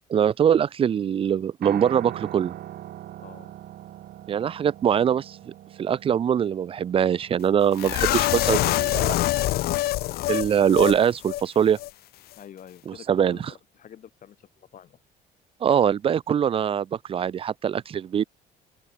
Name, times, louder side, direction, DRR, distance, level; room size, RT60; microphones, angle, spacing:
voice 1, 0.1-2.5 4.3-5.4 5.8-9.2 10.3-11.8 12.9-13.4 15.6-18.2, right 8 dB, 35° right, 0.4 m, -23 dB
Piano, 1.6-9.9, right 13 dB, 70° right, 3.8 m, -42 dB
voice 2, 3.2-3.5 12.4-15.0, left 9 dB, 50° left, 2.9 m, -47 dB
sound 1, 7.8-11.0 11.2-11.4 11.8-11.9, left 16 dB, 65° left, 0.5 m, -24 dB
open air
cardioid pair, 110°, 17 cm